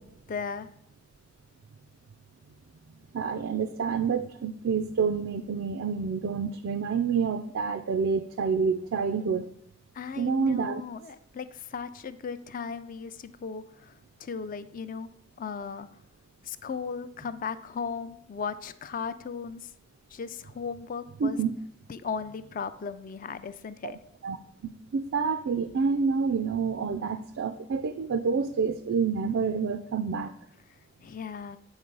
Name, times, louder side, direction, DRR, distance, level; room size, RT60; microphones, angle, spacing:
voice 1, 0.3-0.7 9.9-15.1 15.4-15.9 16.4-19.7 20.1-21.4 21.9-24.0 31.0-31.6, left 6 dB, 45° left, 13 dB, 0.4 m, -36 dB
voice 2, 3.1-9.5 10.2-10.8 21.2-21.5 23.8-23.9 24.2-24.4 24.9-30.3, right 5 dB, 90° right, 9 dB, 0.4 m, -28 dB
8.0 x 3.1 x 5.2 m, 0.71 s
head